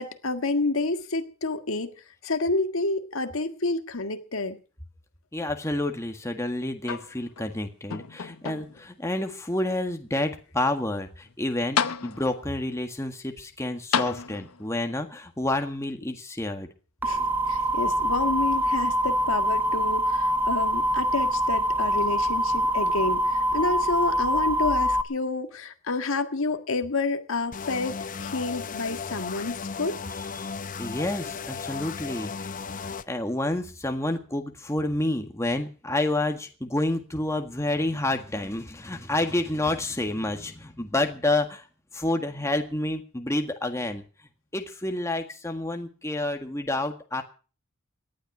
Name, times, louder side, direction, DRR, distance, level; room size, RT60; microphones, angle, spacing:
voice 1, 0.0-1.9 2.2-4.6 17.0-30.0, left 3 dB, 70° left, 7 dB, 1.7 m, -29 dB
voice 2, 5.3-16.7 30.4-32.5 32.8-41.6 41.9-44.0 44.5-47.2, left 1 dB, 15° left, 5 dB, 1.7 m, -29 dB
sound 1, 6.8-7.5 7.9-8.9 9.6-9.7 11.3-11.4 11.8-12.5 13.9-14.8 15.8-15.9, left 6 dB, 90° left, 1.0 m, -30 dB
sound 2, 17.0-25.0, equal, 10° right, 0.9 m, -24 dB
sound 3, 27.5-33.0, left 5 dB, 40° left, 0.7 m, -35 dB
18.5 x 11.5 x 6.1 m, 0.38 s
head